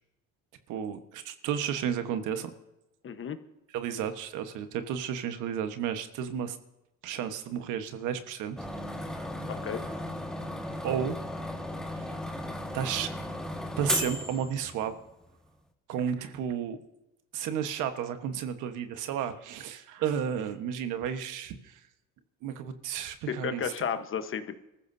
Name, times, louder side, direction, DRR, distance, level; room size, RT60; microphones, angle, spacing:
voice 1, 0.7-2.5 3.7-6.6 7.0-8.6 10.8-11.2 11.9-12.1 12.7-13.1 13.8-14.9 15.9-16.8 17.3-21.8 22.4-23.7, right 8 dB, 90° right, 8 dB, 1.3 m, -32 dB
voice 2, 3.0-3.4 9.5-9.8 23.3-24.5, left 7 dB, 45° left, 9 dB, 1.1 m, -33 dB
sound 1, 8.6-15.1, left 1 dB, ahead, 1.5 m, -35 dB
24.0 x 14.5 x 2.7 m, 0.93 s
cardioid pair, 120°, 30 cm